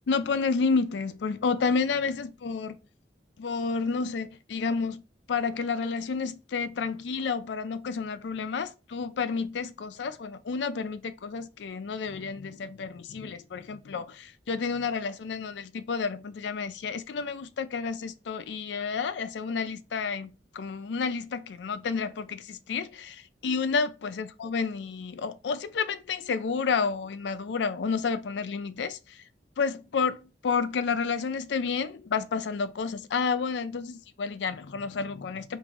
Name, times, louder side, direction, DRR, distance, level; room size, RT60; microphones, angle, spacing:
voice 1, 0.1-2.8 3.4-5.0 5.3-29.2 29.6-35.6, left 5 dB, 80° left, 0.4 m, -30 dB
3.0 x 2.6 x 3.5 m
head